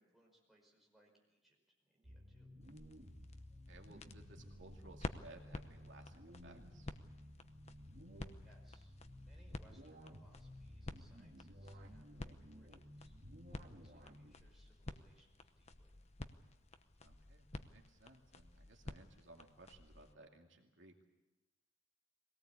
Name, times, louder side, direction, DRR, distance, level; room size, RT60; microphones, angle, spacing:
voice 1, 0.0-2.5 8.4-16.0, right 1 dB, ahead, -2 dB, 5.2 m, -72 dB
sound 1, 2.0-14.3, equal, 50° right, 2.6 m, -56 dB
sound 2, 2.6-20.1, left 2 dB, 35° left, 0.9 m, -52 dB
voice 2, 3.7-6.9 17.0-21.0, right 2 dB, 75° right, 2 dB, 2.4 m, -60 dB
22.5 x 18.0 x 8.5 m, 1.0 s
head